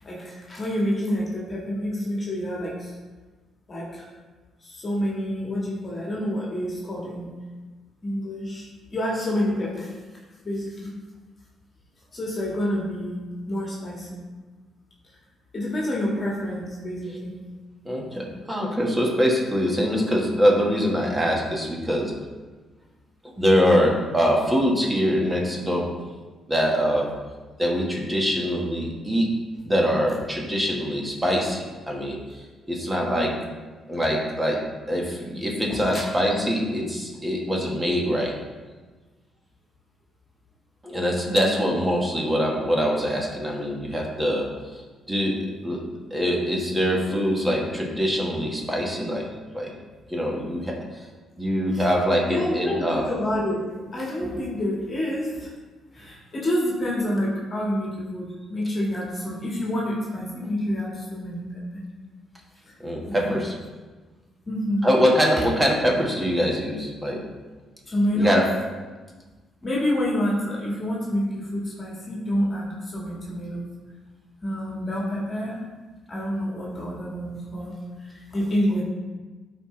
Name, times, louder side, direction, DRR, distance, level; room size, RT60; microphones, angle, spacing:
voice 1, 0.0-2.9 3.7-4.1 4.6-7.3 8.0-9.9 10.4-10.9 12.1-13.2 13.5-14.2 15.5-17.4 33.0-33.3 35.7-36.0 51.7-51.9 52.2-53.6 53.9-55.5 55.9-61.8 63.1-63.4 64.5-64.9 67.9-68.4 69.6-73.7 74.4-75.6 76.1-77.7 78.0-78.8, equal, 35° left, -4 dB, 1.8 m, -28 dB
voice 2, 17.8-22.1 23.4-25.9 26.5-27.1 27.6-29.3 29.6-32.2 32.7-33.4 33.9-34.6 34.9-38.3 40.8-44.8 45.1-45.8 46.1-49.3 49.5-49.7 50.1-50.8 51.4-53.0 62.8-63.5 64.8-67.3 68.1-68.5, equal, 15° right, -1 dB, 1.5 m, -23 dB
11.0 x 4.4 x 3.2 m, 1.3 s
cardioid pair, 90°, 0 cm